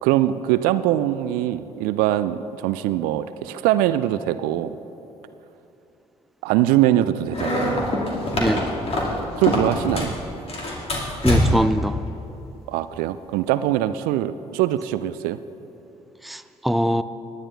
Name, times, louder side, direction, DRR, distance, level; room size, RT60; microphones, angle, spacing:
voice 1, 0.0-4.7 6.4-7.9 9.4-10.1 12.7-15.4, right 13 dB, 65° right, 0.4 m, -22 dB
sound 1, 7.3-10.2 10.5-11.8, left 1 dB, 40° left, 2.5 m, -24 dB
voice 2, 11.2-12.0 16.2-17.0, equal, ahead, 0.4 m, -22 dB
18.5 x 10.5 x 3.4 m
figure-of-eight pair, 45°, 16 cm